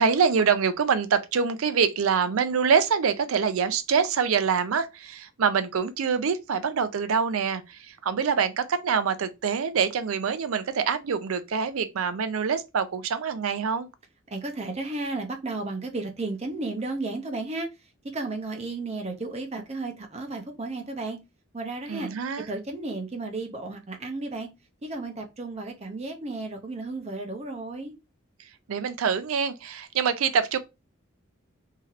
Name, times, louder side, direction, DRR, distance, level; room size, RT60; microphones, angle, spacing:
voice 1, 0.0-13.9 21.9-22.5 28.7-30.6, right 6 dB, 85° right, 0.5 m, -25 dB
voice 2, 14.3-17.7 18.1-21.2 21.5-22.1 22.5-24.5 24.8-27.9, right 2 dB, 30° right, 0.6 m, -33 dB
3.1 x 2.8 x 2.4 m
head